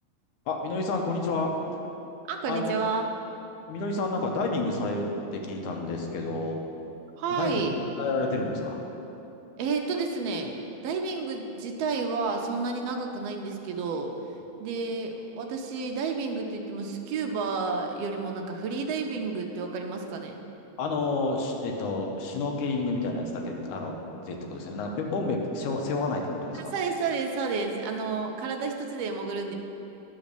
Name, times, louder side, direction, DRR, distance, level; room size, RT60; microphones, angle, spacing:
voice 1, 0.5-1.5 2.5-2.9 3.7-5.1 5.3-6.6 7.4-8.8 20.8-26.7, left 3 dB, 85° left, 2 dB, 2.3 m, -30 dB
voice 2, 2.3-3.1 7.2-7.8 9.6-10.5 10.8-14.1 14.6-20.3 26.7-29.5, right 4 dB, 80° right, 3 dB, 1.4 m, -30 dB
10.5 x 4.0 x 6.6 m, 2.9 s
omnidirectional pair, 3.4 m